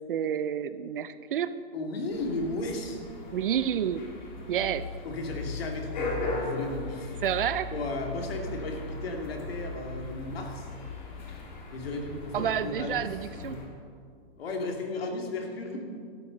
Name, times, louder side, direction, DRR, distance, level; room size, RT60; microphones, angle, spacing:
voice 1, 0.1-1.5 3.3-4.0 4.5-4.9 7.2-7.7 12.3-13.6, right 9 dB, 60° right, 13 dB, 0.6 m, -29 dB
voice 2, 1.7-3.0 5.0-7.1 7.7-10.7 11.7-13.1 13.3-13.6 14.4-15.8, left 2 dB, 70° left, 2 dB, 2.6 m, -34 dB
sound 1, 2.1-13.7, left 2 dB, 45° left, 2.7 m, -38 dB
16.5 x 13.0 x 4.0 m, 2.2 s
hypercardioid pair, 175°, 31 cm